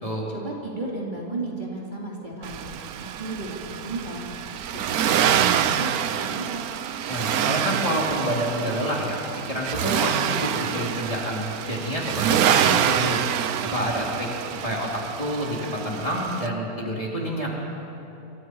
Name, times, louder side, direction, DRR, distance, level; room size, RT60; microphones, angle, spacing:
voice 1, 0.3-2.6 3.0-4.2 4.7-5.9 6.1-6.6, right 2 dB, 30° right, -4 dB, 3.2 m, -34 dB
Accelerating revving vroom, 2.4-16.5, right 9 dB, 80° right, 1.2 m, -26 dB
voice 2, 7.1-9.2 9.5-13.2 13.7-14.3 14.6-14.9 15.2-17.5, equal, 20° left, -4 dB, 3.8 m, -28 dB
27.5 x 25.5 x 4.8 m, 3.0 s
omnidirectional pair, 1.6 m